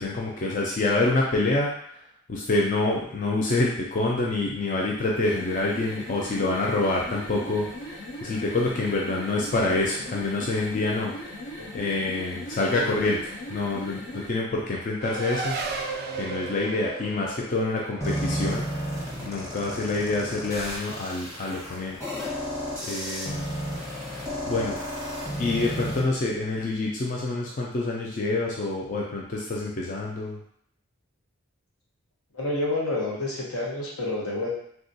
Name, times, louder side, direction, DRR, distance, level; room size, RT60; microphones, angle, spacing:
voice 1, 0.0-1.7 2.3-7.7 8.2-11.1 11.7-15.6 16.2-18.6 19.2-22.0 22.8-23.5 24.4-24.8 25.4-30.4, left 2 dB, 35° left, -3 dB, 0.3 m, -26 dB
sound 1, 5.1-14.4, equal, 55° left, 1.0 m, -39 dB
Race car auto racing, 15.0-19.9, right 4 dB, 45° right, 0.3 m, -35 dB
sound 2, 18.0-26.0, equal, 15° left, 0.9 m, -32 dB
voice 2, 32.3-34.5, left 2 dB, 85° left, -3 dB, 1.0 m, -29 dB
3.5 x 2.3 x 2.6 m, 0.67 s
head